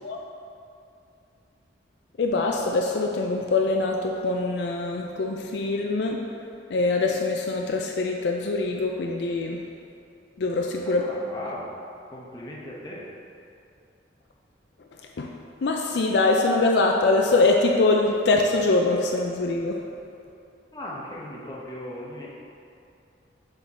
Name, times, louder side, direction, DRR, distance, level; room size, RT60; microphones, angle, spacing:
voice 1, 2.2-6.2 6.7-9.7 10.4-11.0 15.2-15.3 15.6-19.8, left 3 dB, 65° left, 1 dB, 0.4 m, -23 dB
voice 2, 11.0-11.7 12.1-13.1 20.7-22.3, left 1 dB, 20° left, -5 dB, 0.9 m, -37 dB
7.0 x 3.8 x 4.2 m, 2.6 s
head